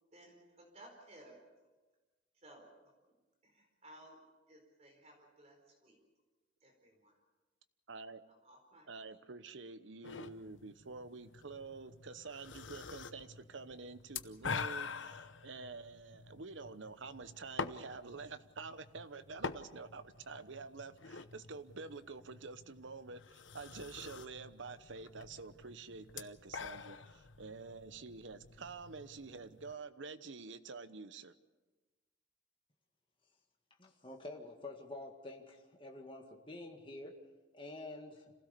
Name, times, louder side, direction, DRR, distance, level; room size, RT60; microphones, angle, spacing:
voice 1, 0.1-1.4 2.3-3.1 3.4-6.0 6.6-7.2 8.3-8.9, right 1 dB, 35° right, 4.4 m, -59 dB
voice 2, 7.9-8.2 8.9-31.3, right 4 dB, 75° right, 1.0 m, -48 dB
sound 1, 10.0-29.8, left 5 dB, 80° left, 0.9 m, -47 dB
voice 3, 33.8-37.2 37.5-38.3, left 2 dB, 25° left, 1.9 m, -48 dB
26.5 x 16.5 x 6.8 m
head